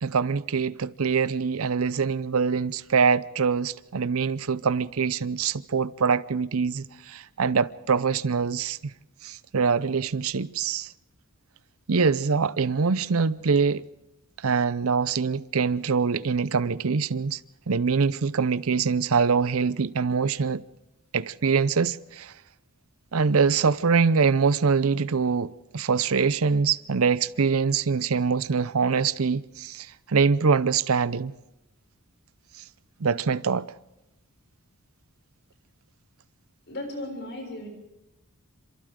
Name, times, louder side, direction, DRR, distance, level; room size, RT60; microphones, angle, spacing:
voice 1, 0.0-8.9 9.2-10.9 11.9-13.8 14.4-17.4 17.7-20.6 21.1-22.3 23.1-31.3 33.0-33.7, right 5 dB, 80° right, 0.6 m, -24 dB
voice 2, 36.7-37.7, left 1 dB, 55° left, 6.7 m, -35 dB
28.5 x 26.5 x 3.8 m
head